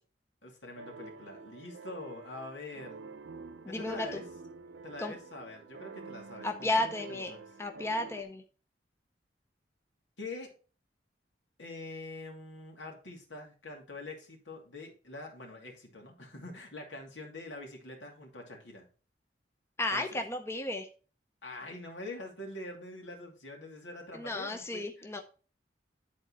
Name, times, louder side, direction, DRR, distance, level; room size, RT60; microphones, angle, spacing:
voice 1, 0.4-3.0 3.7-4.3 4.8-7.5 10.2-10.5 11.6-18.9 19.9-20.2 21.4-25.2, left 2 dB, 85° left, 2.6 m, -45 dB
sound 1, 0.8-8.2, right 4 dB, 75° right, 0.6 m, -48 dB
voice 2, 3.7-4.2 5.0-5.1 6.4-7.3 7.6-8.4 19.8-20.9 24.1-25.2, left 2 dB, 15° left, 0.6 m, -33 dB
10.5 x 4.3 x 4.1 m
head